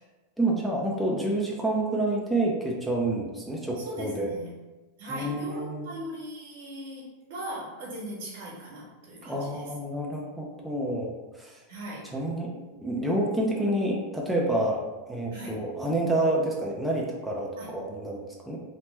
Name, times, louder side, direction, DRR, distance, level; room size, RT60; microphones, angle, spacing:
voice 1, 0.4-4.3 5.1-5.9 9.2-11.5 12.1-12.5 12.8-14.8 15.1-18.6, right 1 dB, ahead, -3 dB, 0.4 m, -28 dB
voice 2, 3.8-4.5 5.0-9.7 11.7-12.1 15.3-15.7 17.6-17.7, equal, 75° right, -6 dB, 1.0 m, -39 dB
2.9 x 2.1 x 3.2 m, 1.1 s
supercardioid pair, 155°, 0 cm